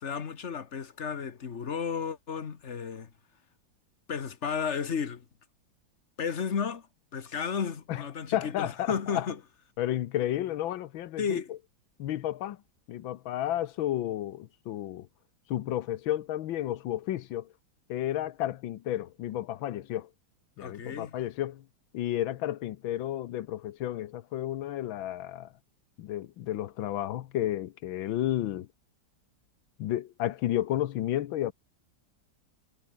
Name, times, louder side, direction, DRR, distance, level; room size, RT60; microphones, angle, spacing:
voice 1, 0.0-3.1 4.1-5.2 6.2-6.9 7.1-9.4 11.2-11.5 20.6-21.1, left 6 dB, 40° left, 1.5 m, -33 dB
voice 2, 8.3-9.3 9.8-11.4 12.0-12.6 12.9-15.1 15.5-17.5 17.9-20.1 20.6-21.6 21.9-25.5 26.0-28.7 29.8-31.5, left 13 dB, 90° left, 1.7 m, -32 dB
omnidirectional pair, 2.1 m